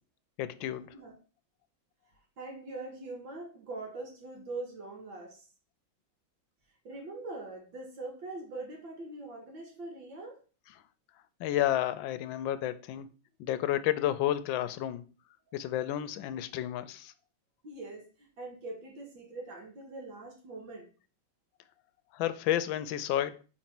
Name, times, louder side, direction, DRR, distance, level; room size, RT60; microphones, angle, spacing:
voice 1, 0.4-0.9 11.4-13.1 13.4-15.0 15.5-17.1 22.1-23.4, left 12 dB, 80° left, 1.3 m, -31 dB
voice 2, 2.4-5.5 6.8-10.4 17.6-20.9, right 2 dB, 70° right, 2.4 m, -42 dB
5.3 x 4.4 x 5.9 m
omnidirectional pair, 2.2 m